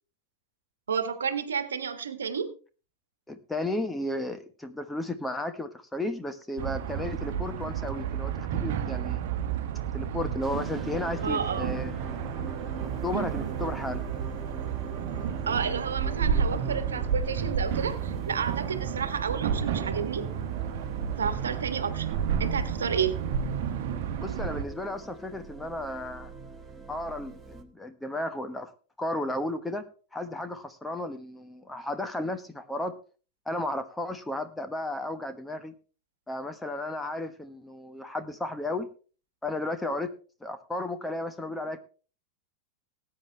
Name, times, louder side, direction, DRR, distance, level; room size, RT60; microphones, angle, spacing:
voice 1, 0.9-2.6 11.2-11.7 15.5-20.3 21.2-23.1, right 6 dB, 70° right, 11 dB, 1.4 m, -31 dB
voice 2, 3.3-9.2 9.9-11.9 13.0-14.0 24.2-26.3 26.9-28.7 29.0-29.8 30.1-32.9 33.5-35.7 36.3-38.9 39.4-40.1 40.4-41.8, left 1 dB, 5° left, 9 dB, 1.2 m, -33 dB
sound 1, 6.6-24.6, right 8 dB, 50° right, 1.2 m, -31 dB
sound 2, 10.4-27.6, right 3 dB, 15° right, 1.6 m, -43 dB
19.0 x 8.8 x 3.3 m, 0.38 s
figure-of-eight pair, 90°, 0 cm